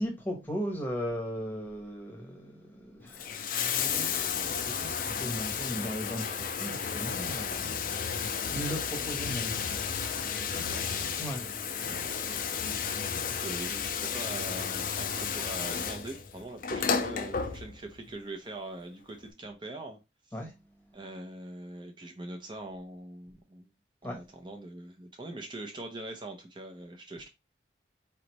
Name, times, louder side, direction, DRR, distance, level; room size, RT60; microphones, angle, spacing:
voice 1, 0.0-9.6 11.2-11.5 20.3-20.6 24.0-24.2, equal, 10° left, 1.1 m, -37 dB
Bathtub (filling or washing), 3.0-18.0 19.1-19.2, left 6 dB, 50° left, 0.5 m, -32 dB
voice 2, 10.5-10.8 11.8-12.4 13.2-20.0 20.9-23.7 24.0-27.3, right 2 dB, 25° right, 0.7 m, -42 dB
4.0 x 3.3 x 3.0 m
head